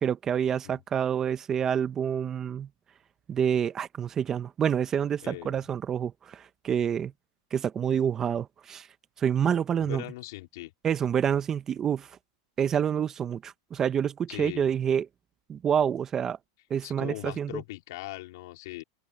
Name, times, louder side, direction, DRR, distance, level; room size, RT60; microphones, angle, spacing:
voice 1, 0.0-2.7 3.3-7.1 7.5-8.9 9.2-10.0 10.8-12.1 12.6-15.1 15.5-16.4 16.7-17.5, right 8 dB, 20° right, 0.8 m, -27 dB
voice 2, 5.2-5.6 9.8-10.7 14.3-14.7 16.8-18.8, left 19 dB, 65° left, 3.9 m, -40 dB
open air
supercardioid pair, 150°, 2 cm